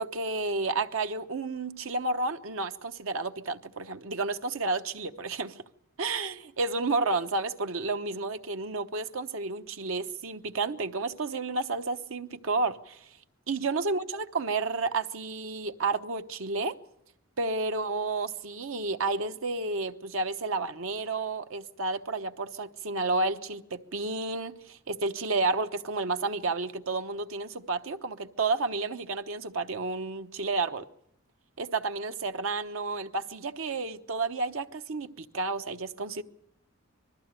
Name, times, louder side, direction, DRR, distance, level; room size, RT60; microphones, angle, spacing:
voice 1, 0.0-5.6 6.0-13.0 13.5-16.8 17.4-30.9 31.6-36.2, right 3 dB, 85° right, 1.0 m, -31 dB
20.5 x 14.0 x 8.9 m
head